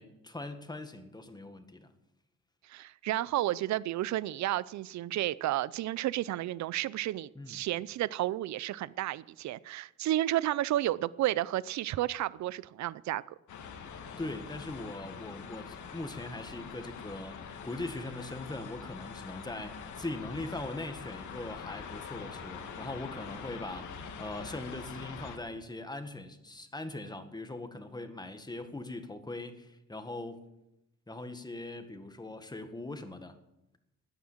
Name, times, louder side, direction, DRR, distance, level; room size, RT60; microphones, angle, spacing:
voice 1, 0.0-1.9 7.3-7.6 14.2-30.5 31.1-33.4, left 2 dB, 15° left, 1.7 m, -41 dB
voice 2, 2.7-13.4, right 14 dB, 65° right, 0.5 m, -32 dB
sound 1, 13.5-25.4, left 6 dB, 75° left, 2.0 m, -44 dB
14.0 x 9.7 x 7.4 m
cardioid pair, 90°, 30 cm